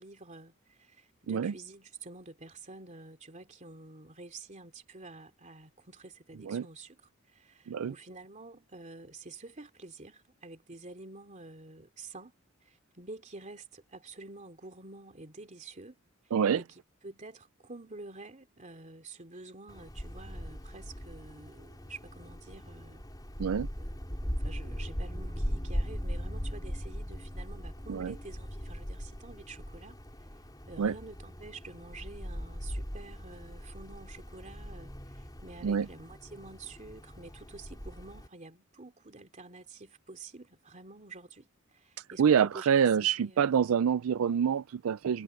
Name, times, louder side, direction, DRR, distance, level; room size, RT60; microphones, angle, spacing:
voice 1, 0.0-7.0 7.3-12.3 12.6-16.0 16.5-16.6 17.0-23.0 23.8-30.0 30.7-43.8, right 3 dB, 35° right, 2.8 m, -49 dB
voice 2, 16.3-16.6 23.4-23.7 27.9-28.1 30.8-30.9 35.6-35.9 42.0-45.2, right 7 dB, 80° right, 0.4 m, -26 dB
Wind, 19.7-38.3, equal, 20° left, 5.7 m, -39 dB
head